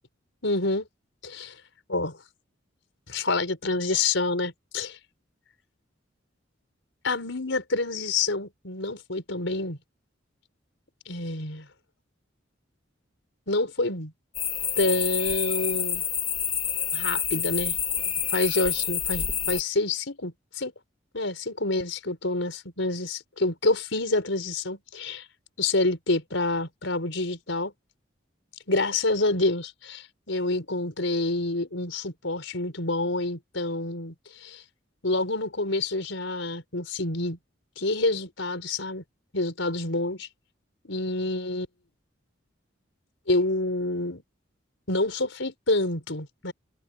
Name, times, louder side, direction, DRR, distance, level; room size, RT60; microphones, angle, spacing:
voice 1, 0.4-0.9 1.2-1.6 1.9-2.2 3.1-5.0 7.0-9.8 11.1-11.7 13.5-14.1 14.8-16.0 16.9-17.7 18.3-20.7 21.1-25.2 25.6-27.7 28.7-34.6 35.0-37.4 37.8-39.0 39.3-40.3 40.8-41.7 43.3-44.2 44.9-46.5, left 2 dB, 80° left, 4.6 m, -27 dB
sound 1, 14.3-19.6, left 8 dB, 30° left, 1.8 m, -28 dB
head